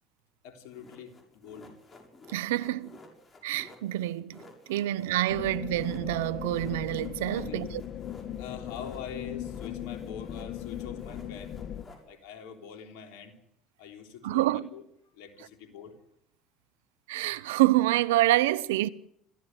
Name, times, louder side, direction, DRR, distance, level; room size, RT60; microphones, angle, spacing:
voice 1, 0.4-1.7 4.7-4.9 7.3-7.7 8.4-11.6 12.1-13.4 13.8-14.8 15.1-16.0, left 7 dB, 75° left, 3.6 m, -44 dB
sound 1, 0.7-9.1 9.4-12.0, left 2 dB, 35° left, 7.1 m, -54 dB
voice 2, 2.3-2.9 3.4-4.4 4.7-7.7 14.2-14.7 17.1-18.9, right 16 dB, 80° right, 0.8 m, -27 dB
sound 2, 5.3-11.8, left 10 dB, 55° left, 1.7 m, -38 dB
26.5 x 15.0 x 8.0 m
hypercardioid pair, 70°, 0 cm